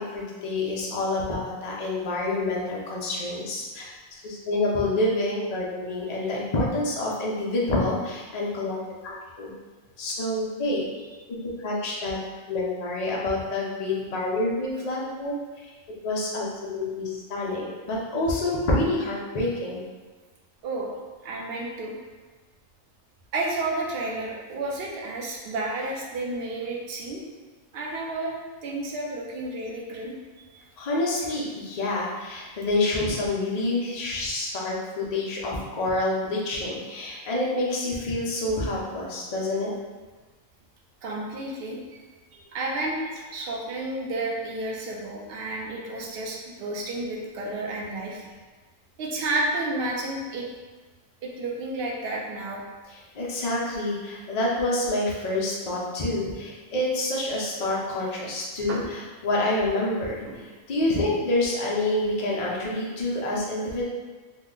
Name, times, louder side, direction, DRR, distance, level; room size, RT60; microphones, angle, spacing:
voice 1, 0.0-8.8 9.0-9.5 10.0-10.8 11.3-12.2 12.5-15.3 16.0-19.8 30.8-39.7 52.9-60.2 60.7-63.8, left 2 dB, 45° left, -4 dB, 0.5 m, -27 dB
voice 2, 20.6-21.0 21.2-21.9 23.3-27.2 27.7-30.2 41.0-42.0 42.3-48.3 49.0-50.5 51.2-52.6 58.7-58.8 60.3-60.4, right 2 dB, 60° right, -2 dB, 0.7 m, -31 dB
3.0 x 2.1 x 3.7 m, 1.3 s
omnidirectional pair, 1.4 m